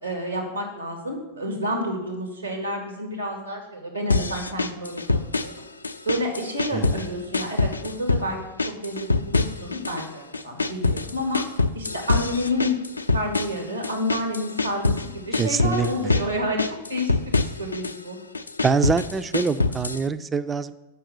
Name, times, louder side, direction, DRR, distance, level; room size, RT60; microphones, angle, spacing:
voice 1, 0.0-5.5 6.1-8.4 8.7-11.4 11.7-12.7 13.1-16.6 16.9-17.3 17.6-18.2, left 1 dB, 85° right, 1 dB, 2.0 m, -29 dB
sound 1, 4.1-5.6 5.8-7.1 7.3-8.3 8.6-10.1 10.3-15.1 15.3-16.3 16.6-18.0 18.3-20.0, left 3 dB, 80° left, 0.4 m, -24 dB
voice 2, 15.4-16.1 18.6-20.7, right 5 dB, 15° right, 13 dB, 0.3 m, -25 dB
6.8 x 5.8 x 6.5 m, 0.99 s
figure-of-eight pair, 90°, 0 cm